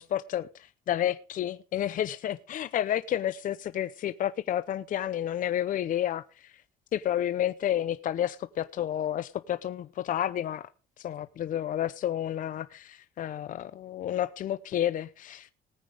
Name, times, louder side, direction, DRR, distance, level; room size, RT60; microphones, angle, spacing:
voice 1, 0.0-6.5 6.9-10.7 11.0-15.5, left 11 dB, 50° left, 0.7 m, -30 dB
19.5 x 9.2 x 3.5 m
cardioid pair, 110°, 17 cm